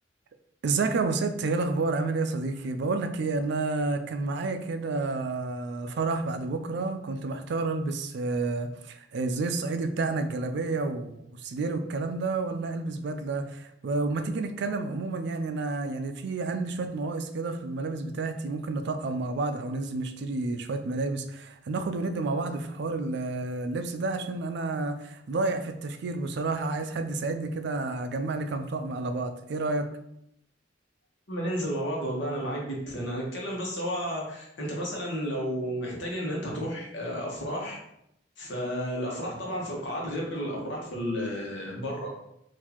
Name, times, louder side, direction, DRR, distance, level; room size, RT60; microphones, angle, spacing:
voice 1, 0.6-29.9, right 3 dB, 60° right, 8 dB, 0.4 m, -30 dB
voice 2, 31.3-37.8 38.4-42.1, equal, 65° left, -3 dB, 1.1 m, -32 dB
3.9 x 2.6 x 2.9 m, 0.78 s
head